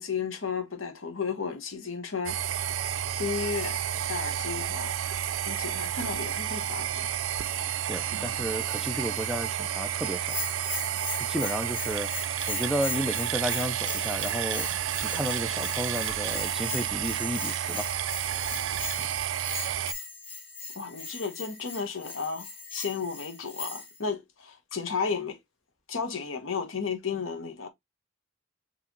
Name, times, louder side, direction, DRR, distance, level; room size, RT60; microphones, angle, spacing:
voice 1, 0.0-2.4 3.1-3.8 4.1-4.9 5.5-7.1 20.7-25.4 25.9-27.7, left 5 dB, 80° left, 1.2 m, -33 dB
sound 1, 2.3-19.9, right 10 dB, 75° right, 0.4 m, -31 dB
voice 2, 7.9-10.3 11.3-14.7 15.0-17.9, equal, ahead, 0.4 m, -33 dB
Bell, 10.2-24.0, left 4 dB, 30° left, 2.1 m, -39 dB
4.8 x 3.2 x 3.0 m
head